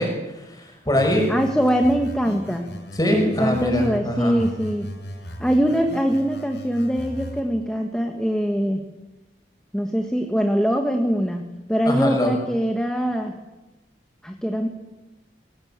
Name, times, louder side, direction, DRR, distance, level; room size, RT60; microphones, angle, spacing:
voice 1, 0.0-1.3 3.0-4.3 11.9-12.3, left 1 dB, 20° left, 2 dB, 6.0 m, -23 dB
sound 1, 1.0-4.0 4.4-7.4, equal, 75° left, 5.6 m, -37 dB
voice 2, 1.3-2.7 3.1-4.9 5.4-8.8 9.7-13.4 14.2-14.7, equal, 5° left, 3 dB, 1.5 m, -23 dB
24.0 x 17.5 x 8.9 m, 1.1 s
head